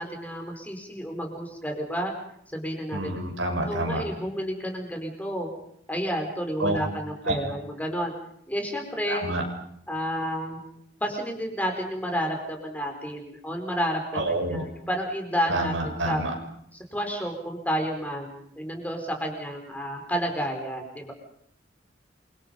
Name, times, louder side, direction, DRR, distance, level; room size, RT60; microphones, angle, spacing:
voice 1, 0.0-2.1 2.5-3.1 3.7-5.5 5.9-8.1 8.5-9.3 9.9-10.6 11.0-16.2 16.9-21.1, equal, 10° left, 3 dB, 4.8 m, -30 dB
voice 2, 2.9-4.0 6.6-6.8 7.3-7.4 9.0-9.4 14.1-14.6 15.5-16.3, right 1 dB, 80° right, 3 dB, 7.0 m, -28 dB
28.5 x 25.0 x 5.4 m, 0.68 s
head